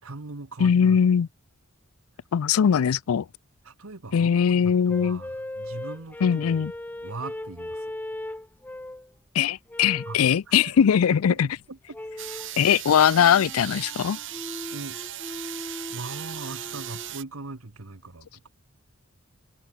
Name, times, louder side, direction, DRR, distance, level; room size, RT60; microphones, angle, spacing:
voice 1, 0.0-1.0 3.6-6.7 7.0-7.9 10.0-10.8 11.1-12.0 14.7-15.0 15.9-18.5, right 3 dB, 80° right, 1.4 m, -40 dB
voice 2, 0.6-1.3 2.3-3.2 4.1-5.2 6.2-6.7 9.3-11.5 12.6-14.2, left 8 dB, 85° left, 0.4 m, -20 dB
sound 1, 4.9-9.1 9.7-10.3 11.9-12.6 13.1-17.1, left 1 dB, 10° left, 0.4 m, -38 dB
sound 2, 12.2-17.2, right 13 dB, 60° right, 2.2 m, -37 dB
head